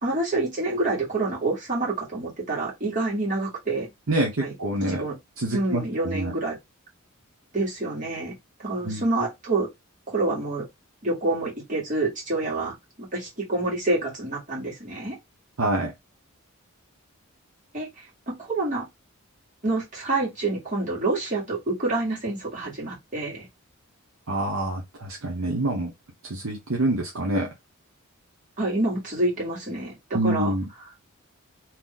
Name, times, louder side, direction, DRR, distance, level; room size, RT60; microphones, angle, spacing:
voice 1, 0.0-3.9 4.4-4.5 4.9-5.2 5.5-6.6 7.5-8.3 8.6-9.7 10.1-10.6 11.0-12.7 13.1-15.2 17.7-18.9 19.6-23.5 28.6-30.5, right 2 dB, 35° right, 1.8 m, -27 dB
voice 2, 4.1-5.0 5.4-6.3 8.8-9.0 15.6-15.9 24.3-25.9 26.2-27.5 30.1-30.6, right 1 dB, 65° right, 0.9 m, -26 dB
2.9 x 2.6 x 3.8 m
head